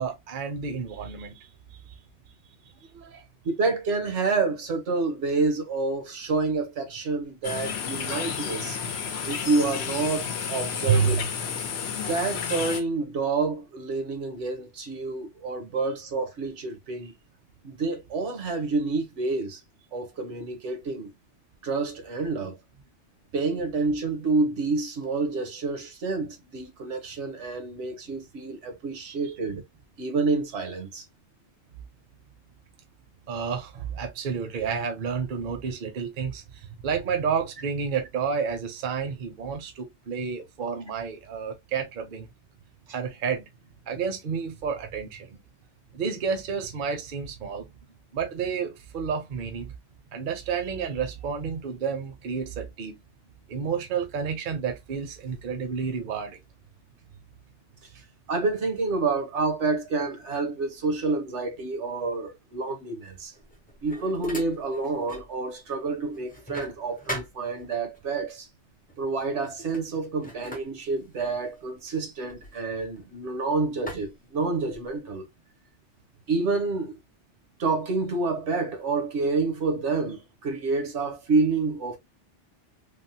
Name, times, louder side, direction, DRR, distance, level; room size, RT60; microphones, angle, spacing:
voice 1, 0.0-1.5 1.9-2.0 2.8-3.2 10.9-11.2 29.1-29.3 33.3-42.3 42.9-43.5 43.9-45.4 45.9-47.7 48.1-49.7 50.1-53.0 53.5-56.4, right 6 dB, 55° right, 0.7 m, -30 dB
voice 2, 3.4-8.8 9.3-11.1 12.1-17.1 17.6-19.6 19.9-21.1 21.6-22.6 23.3-29.6 30.0-31.0 58.3-63.3 63.8-68.5 69.0-75.3 76.3-77.0 77.6-82.0, right 3 dB, 75° right, 1.1 m, -28 dB
sound 1, 7.4-12.8, left 7 dB, 70° left, 0.9 m, -31 dB
sound 2, 63.3-65.3 65.7-68.0 68.9-69.1 69.5-73.3 73.9-75.0, equal, 10° left, 0.4 m, -41 dB
3.4 x 2.0 x 2.6 m
omnidirectional pair, 1.2 m